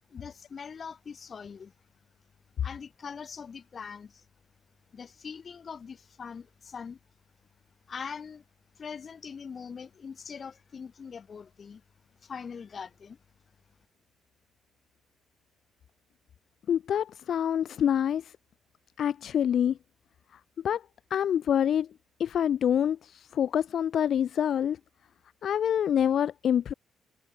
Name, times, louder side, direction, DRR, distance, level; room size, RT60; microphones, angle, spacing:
voice 1, 0.1-1.7 2.6-4.2 4.9-7.0 7.9-8.4 8.8-11.8 12.2-13.2, left 6 dB, 45° left, 6.0 m, -42 dB
voice 2, 16.7-18.3 19.0-19.8 20.6-20.8 21.1-21.9 22.2-24.8 25.4-26.7, left 9 dB, 65° left, 0.7 m, -26 dB
cardioid pair, 90°, 0 cm